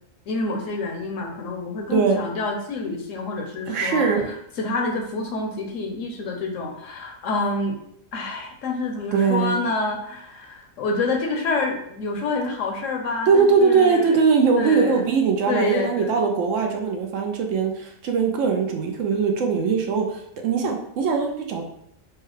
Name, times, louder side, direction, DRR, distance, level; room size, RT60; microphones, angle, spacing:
voice 1, 0.3-4.1 4.6-7.8 8.1-14.2 14.6-15.0 15.5-16.3, left 3 dB, 70° left, 3 dB, 1.0 m, -27 dB
voice 2, 3.7-4.2 9.1-9.6 13.3-21.6, right 5 dB, 70° right, 3 dB, 0.9 m, -21 dB
4.8 x 2.2 x 3.1 m, 0.72 s
omnidirectional pair, 1.4 m